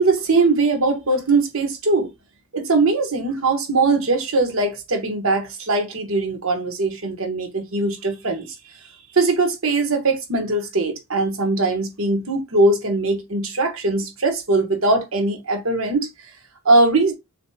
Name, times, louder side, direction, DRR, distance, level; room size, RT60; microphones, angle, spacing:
voice 1, 0.0-2.1 2.5-16.1 16.6-17.1, right 3 dB, 65° right, 1.3 m, -21 dB
6.5 x 3.0 x 2.3 m
head